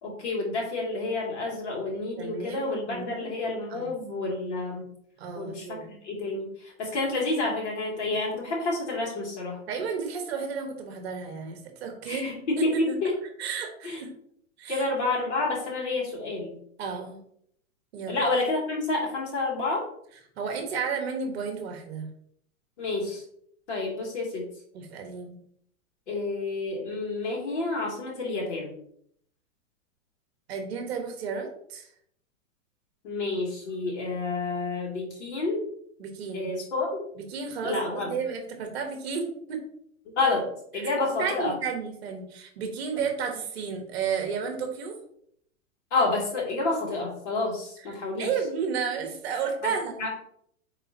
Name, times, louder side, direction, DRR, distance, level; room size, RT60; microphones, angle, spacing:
voice 1, 0.0-4.9 5.3-9.6 12.0-13.1 13.8-14.0 14.7-16.5 18.1-19.9 22.8-23.2 23.7-24.4 26.1-28.7 33.0-35.6 36.3-37.1 37.6-38.1 40.2-41.6 45.9-48.3 49.6-49.7 50.0-50.1, left 3 dB, 50° left, -2 dB, 2.7 m, -29 dB
voice 2, 2.2-3.3 3.7-3.9 5.2-5.9 9.7-12.3 12.6-13.0 13.4-14.1 14.6-14.8 16.8-17.2 17.9-18.2 20.4-22.1 24.7-25.4 30.5-31.9 36.0-36.5 37.2-39.6 40.7-40.9 41.2-44.9 47.8-50.1, right 6 dB, 45° right, 3 dB, 1.4 m, -32 dB
9.0 x 4.1 x 2.9 m, 0.69 s
supercardioid pair, 175°, 43 cm